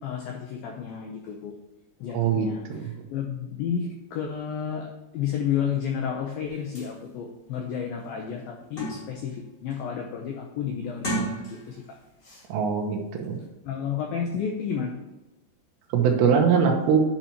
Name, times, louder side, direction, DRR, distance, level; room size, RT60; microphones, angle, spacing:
voice 1, 0.0-1.5 2.0-11.8 13.6-14.9, left 7 dB, 90° left, 2 dB, 2.0 m, -31 dB
voice 2, 2.1-2.9 12.5-13.4 15.9-17.0, right 6 dB, 80° right, 2 dB, 3.2 m, -22 dB
sound 1, 6.8-6.9 7.5-7.6 8.0-9.3 9.7-10.1 10.9-11.9 12.2-12.5, right 1 dB, 40° left, 1.7 m, -34 dB
10.5 x 5.9 x 2.9 m, 1.1 s
omnidirectional pair, 5.2 m